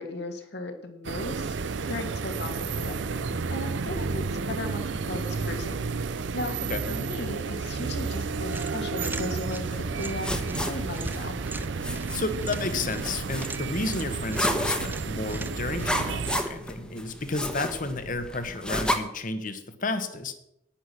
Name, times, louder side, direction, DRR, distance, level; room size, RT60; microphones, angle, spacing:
voice 1, 0.0-5.8 6.3-6.6 6.9-11.4, left 2 dB, 65° left, 5 dB, 2.0 m, -36 dB
sound 1, 1.0-16.4, right 4 dB, 80° right, 0.6 m, -32 dB
sound 2, 8.5-16.7, right 2 dB, 10° right, 0.5 m, -42 dB
sound 3, 9.7-19.0, left 1 dB, 5° left, 1.2 m, -33 dB
voice 2, 12.1-20.3, left 3 dB, 45° left, 9 dB, 1.3 m, -32 dB
10.0 x 10.0 x 6.0 m, 0.79 s
head